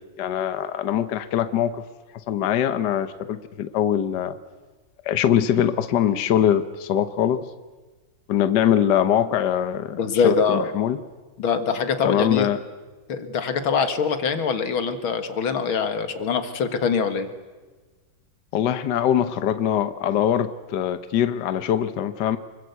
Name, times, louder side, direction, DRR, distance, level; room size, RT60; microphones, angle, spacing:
voice 1, 0.2-1.8 2.3-4.4 5.0-7.4 8.3-10.0 10.2-11.0 12.0-12.6 18.5-22.4, left 10 dB, 65° left, 11 dB, 1.5 m, -22 dB
voice 2, 10.0-10.7 11.4-12.5 13.1-17.3, left 6 dB, 90° left, 9 dB, 2.5 m, -23 dB
25.5 x 22.0 x 8.2 m, 1.3 s
omnidirectional pair, 2.2 m